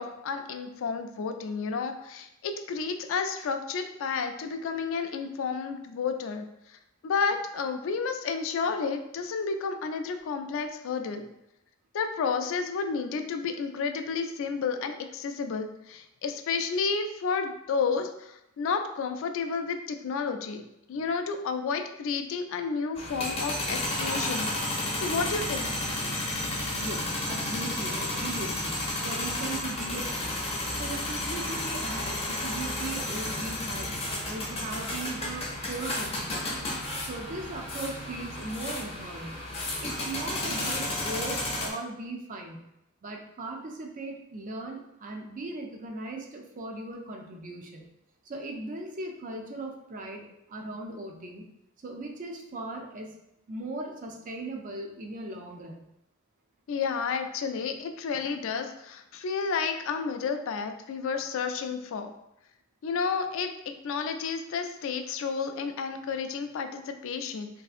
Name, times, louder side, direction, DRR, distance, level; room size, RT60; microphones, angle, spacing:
voice 1, 0.0-6.4 7.0-11.2 11.9-20.6 20.9-24.5 24.9-25.7 56.7-62.1 62.8-63.5 63.8-67.5, left 5 dB, 65° left, 7 dB, 0.3 m, -31 dB
sound 1, 23.0-41.7, left 1 dB, 30° left, 0.6 m, -32 dB
voice 2, 25.6-26.2 26.7-28.8 29.0-30.4 30.8-36.5 37.0-39.4 39.8-42.6 43.0-47.9 48.2-51.5 51.8-53.1 53.5-55.9, right 2 dB, 40° right, 1 dB, 0.4 m, -38 dB
3.3 x 2.7 x 2.4 m, 0.84 s
head